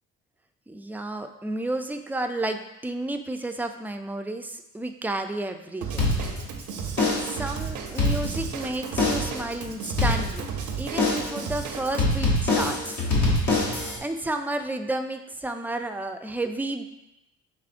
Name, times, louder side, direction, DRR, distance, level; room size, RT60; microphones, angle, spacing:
voice 1, 0.7-6.1 7.2-10.5 10.8-13.0 13.8-16.8, right 2 dB, 5° right, 5 dB, 0.3 m, -31 dB
Drum kit / Drum, 5.8-12.0, right 6 dB, 75° right, 0.7 m, -34 dB
sound 1, 6.0-6.6 7.0-7.5 7.9-8.6 9.0-9.5 10.0-10.6 11.0-11.5 12.0-14.0, left 2 dB, 75° left, 1.2 m, -24 dB
6.2 x 3.4 x 2.5 m, 0.91 s
cardioid pair, 90°, 30 cm